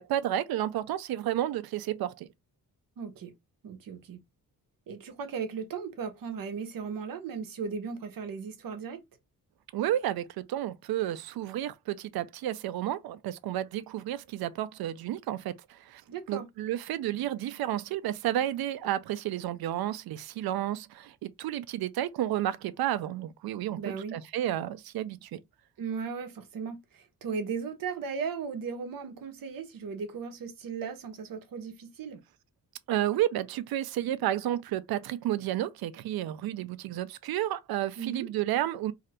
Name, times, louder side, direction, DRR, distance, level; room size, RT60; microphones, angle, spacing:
voice 1, 0.0-2.3 9.7-16.0 16.3-25.4 32.9-38.9, right 12 dB, 85° right, 0.5 m, -31 dB
voice 2, 3.0-3.3 3.6-4.2 4.9-9.0 16.1-16.5 23.8-24.2 25.8-32.2 38.0-38.3, right 6 dB, 65° right, 0.9 m, -36 dB
2.7 x 2.4 x 3.3 m
cardioid pair, 130°, 36 cm